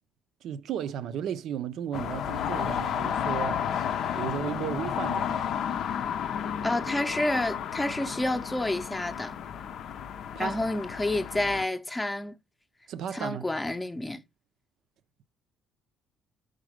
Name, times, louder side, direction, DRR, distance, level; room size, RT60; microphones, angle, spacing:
voice 1, 0.4-3.9 4.2-5.5 10.3-10.6 12.9-13.4, right 9 dB, 70° right, 0.5 m, -34 dB
sound 1, 1.9-11.6, left 8 dB, 65° left, 0.5 m, -32 dB
voice 2, 6.6-9.3 10.4-12.4 13.1-14.2, left 1 dB, 10° left, 0.6 m, -29 dB
5.1 x 4.0 x 4.9 m
cardioid pair, 95°, 0 cm